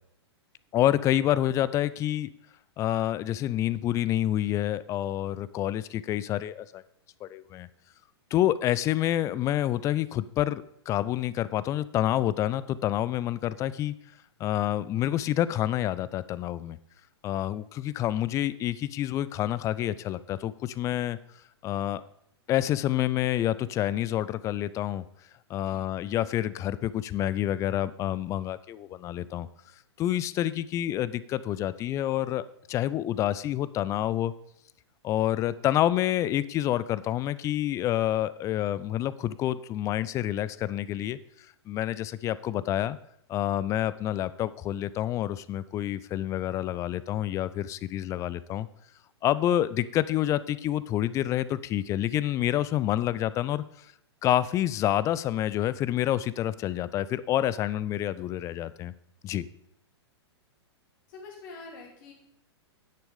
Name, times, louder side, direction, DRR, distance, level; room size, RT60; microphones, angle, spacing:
voice 1, 0.7-2.3 2.8-6.8 7.2-7.7 8.3-13.9 14.4-16.8 17.2-21.2 21.6-22.0 22.5-25.0 25.5-29.5 30.0-34.3 35.0-41.2 41.7-43.0 43.3-48.7 49.2-53.9 54.2-58.9 59.2-59.5, left 12 dB, 20° left, 17 dB, 0.4 m, -28 dB
voice 2, 58.4-58.7 61.1-62.1, left 3 dB, 45° left, 0 dB, 2.7 m, -46 dB
9.9 x 6.2 x 5.0 m, 0.74 s
figure-of-eight pair, 105°, 14 cm